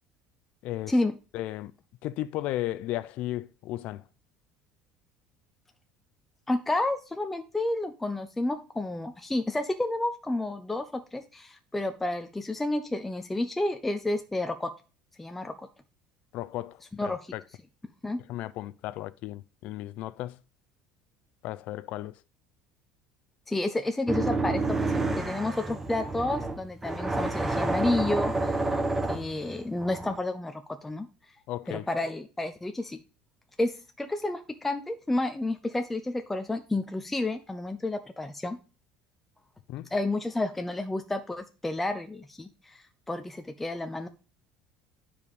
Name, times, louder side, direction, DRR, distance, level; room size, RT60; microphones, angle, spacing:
voice 1, 0.6-0.9 1.3-1.7 2.0-4.0 16.3-17.4 18.3-20.4 21.4-22.2 31.5-31.9 39.7-39.9, left 15 dB, 55° left, 0.5 m, -35 dB
voice 2, 6.5-14.7 15.2-15.7 17.0-17.2 18.0-18.2 23.5-28.6 29.1-31.1 31.7-33.0 33.6-38.6 39.9-44.1, left 2 dB, 5° left, 0.5 m, -30 dB
sound 1, 24.1-30.2, right 2 dB, 10° right, 1.0 m, -29 dB
9.6 x 5.0 x 5.2 m
cardioid pair, 160°, 3 cm